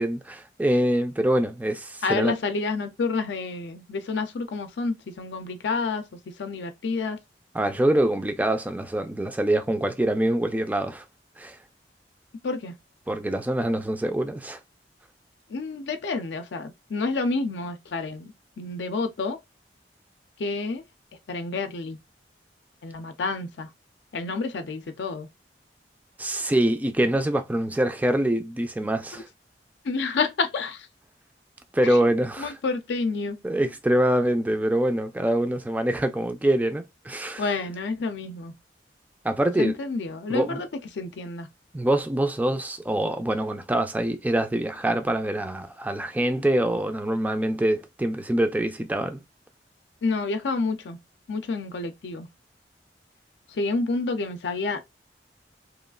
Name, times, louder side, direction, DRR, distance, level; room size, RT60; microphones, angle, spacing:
voice 1, 0.0-2.3 7.5-11.0 11.4-11.6 13.1-14.6 26.2-29.3 31.7-32.6 33.4-37.5 39.2-39.7 40.3-40.6 41.7-49.2, right 1 dB, 10° right, 0.3 m, -24 dB
voice 2, 2.0-7.2 12.4-12.8 15.5-19.4 20.4-20.8 21.3-22.0 22.8-23.7 24.1-25.3 29.1-29.2 29.8-30.9 32.4-33.4 37.4-38.5 39.6-40.7 40.9-41.5 50.0-51.0 51.3-52.3 53.5-54.8, left 3 dB, 85° left, 0.4 m, -29 dB
2.9 x 2.3 x 2.3 m
head